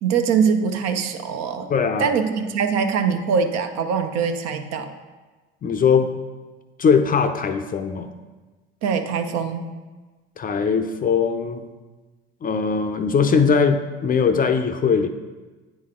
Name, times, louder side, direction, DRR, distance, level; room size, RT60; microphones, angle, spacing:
voice 1, 0.0-1.7 2.0-4.9 8.8-9.7, right 6 dB, 55° right, 7 dB, 0.8 m, -23 dB
voice 2, 1.7-2.1 5.6-6.1 6.8-8.1 10.4-11.6 12.4-15.1, left 6 dB, 30° left, 7 dB, 0.5 m, -20 dB
8.7 x 4.1 x 3.7 m, 1.3 s
hypercardioid pair, 80°, 31 cm